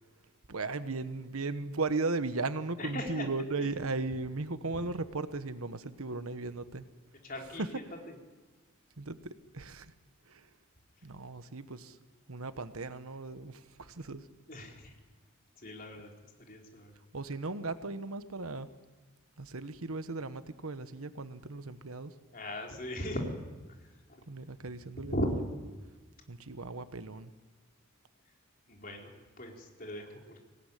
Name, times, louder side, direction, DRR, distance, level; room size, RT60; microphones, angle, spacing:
voice 1, 0.5-6.8 7.6-7.7 9.0-9.2 9.5-9.9 10.3-10.5 11.0-12.0 12.3-14.3 17.1-18.7 19.4-22.1 24.3-25.1 26.3-27.3, right 3 dB, 85° right, 11 dB, 1.2 m, -36 dB
voice 2, 2.8-3.3 7.2-7.6 8.1-8.2 14.5-14.9 15.6-16.1 16.5-16.9 22.3-23.2 24.1-24.2 25.1-25.3 28.7-29.1 29.4-30.4, left 1 dB, 40° left, 1 dB, 4.1 m, -38 dB
25.0 x 18.5 x 10.0 m, 1.3 s
head